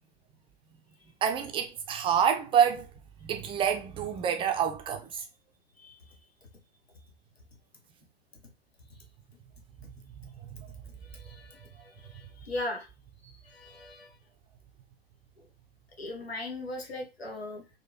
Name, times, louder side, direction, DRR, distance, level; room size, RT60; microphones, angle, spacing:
voice 1, 1.2-2.9 3.2-5.2 10.5-10.7, right 8 dB, 15° right, 0.5 m, -27 dB
voice 2, 5.8-6.2 8.9-9.0 11.0-12.9 13.2-14.2 15.4-15.5 16.0-17.8, left 2 dB, 80° left, 1.4 m, -39 dB
4.1 x 2.7 x 4.2 m
figure-of-eight pair, 95°, 30 cm